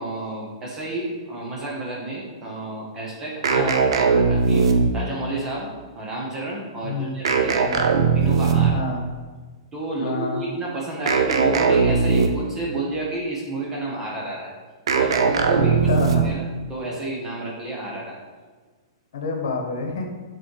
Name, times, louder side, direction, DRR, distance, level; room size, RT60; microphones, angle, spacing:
voice 1, 0.0-5.7 5.9-7.7 8.1-8.8 9.7-14.5 14.9-15.8 16.1-18.2, right 2 dB, 15° right, -3 dB, 1.1 m, -30 dB
sound 1, 3.4-5.2 7.3-8.9 11.1-12.6 14.9-16.5, right 5 dB, 85° right, 0.6 m, -19 dB
voice 2, 6.8-7.1 7.7-7.9 8.7-9.0 10.0-10.4 15.5-16.3 19.1-20.1, left 4 dB, 75° left, 2 dB, 1.1 m, -28 dB
7.0 x 4.1 x 3.3 m, 1.4 s
hypercardioid pair, 160°, 3 cm